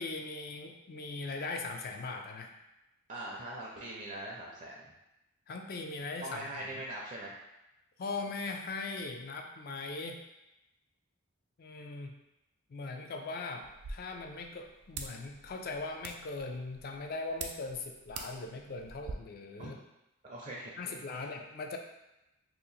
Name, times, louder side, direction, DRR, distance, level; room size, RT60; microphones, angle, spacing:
voice 1, 0.0-2.5 5.5-6.8 8.0-10.2 11.6-12.1 12.7-19.7 20.8-21.8, left 3 dB, 45° left, 4 dB, 0.4 m, -40 dB
voice 2, 3.1-4.9 6.2-7.4 19.6-19.7 20.2-21.2, right 1 dB, 35° right, -3 dB, 0.4 m, -42 dB
sound 1, 13.6-19.1, right 4 dB, 90° right, 0.4 m, -47 dB
2.8 x 2.5 x 4.0 m, 0.93 s
head